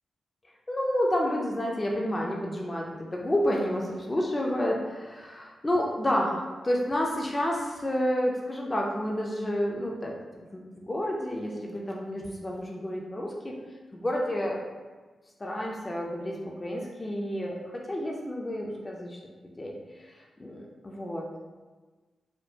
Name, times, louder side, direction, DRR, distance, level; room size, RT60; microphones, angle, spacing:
voice 1, 0.7-10.1 10.5-13.6 13.9-14.6 15.4-21.3, equal, 20° left, -2 dB, 0.4 m, -30 dB
4.2 x 2.3 x 2.7 m, 1.3 s
wide cardioid pair, 155°, 0 cm